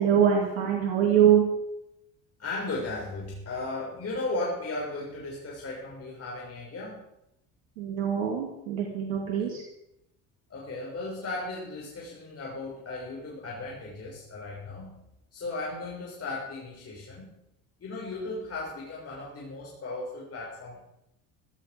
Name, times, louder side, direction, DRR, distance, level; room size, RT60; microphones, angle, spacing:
voice 1, 0.0-1.4 7.8-9.6, right 9 dB, 90° right, 0 dB, 2.6 m, -23 dB
voice 2, 2.4-7.0 10.5-15.0 15.3-17.4 17.8-20.8, left 2 dB, 40° left, -4 dB, 6.5 m, -36 dB
16.0 x 14.5 x 5.3 m, 0.83 s
hypercardioid pair, 75°, 39 cm